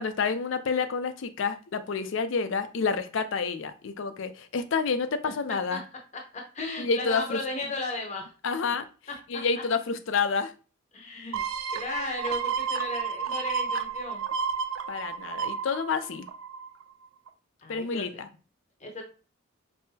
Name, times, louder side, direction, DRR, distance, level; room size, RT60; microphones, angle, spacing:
voice 1, 0.0-5.8 6.8-7.4 8.4-8.8 9.3-10.5 14.9-16.3 17.7-18.3, left 5 dB, 70° left, 10 dB, 0.5 m, -29 dB
voice 2, 6.3-8.3 9.3-9.4 10.9-11.4 11.7-14.3 17.6-18.2 18.8-19.0, left 2 dB, 35° left, 2 dB, 0.7 m, -35 dB
sound 1, 11.3-16.8 17.3-17.4, right 6 dB, 80° right, 0.4 m, -31 dB
5.4 x 2.1 x 2.7 m, 0.34 s
head